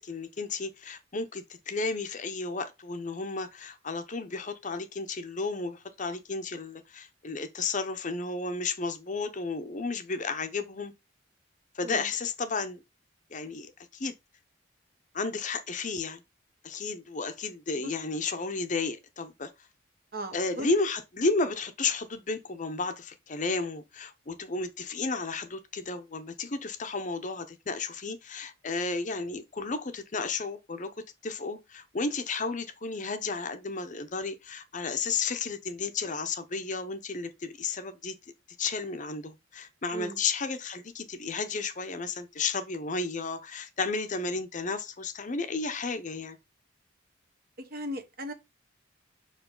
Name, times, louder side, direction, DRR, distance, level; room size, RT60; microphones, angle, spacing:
voice 1, 0.0-10.9 11.7-12.8 13.3-14.1 15.1-16.2 16.6-19.5 20.3-38.1 38.6-46.4, left 4 dB, 40° left, 0.7 m, -33 dB
voice 2, 20.1-20.7 39.9-40.2 47.7-48.3, equal, 50° right, 1.1 m, -37 dB
6.1 x 4.9 x 3.8 m
head